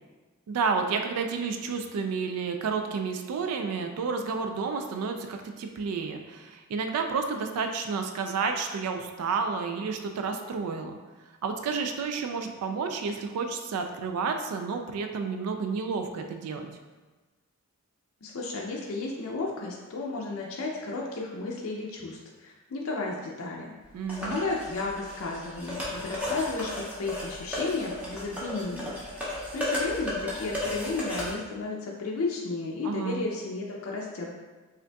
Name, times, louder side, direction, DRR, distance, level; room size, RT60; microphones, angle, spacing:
voice 1, 0.5-11.0 11.4-16.7 23.9-24.4 32.8-33.2, right 5 dB, 90° right, 5 dB, 0.3 m, -30 dB
voice 2, 18.2-23.7 24.2-34.3, left 3 dB, 65° left, -2 dB, 0.4 m, -33 dB
sound 1, 24.1-31.3, left 1 dB, 5° right, 0.6 m, -34 dB
5.0 x 2.5 x 2.2 m, 1.3 s
head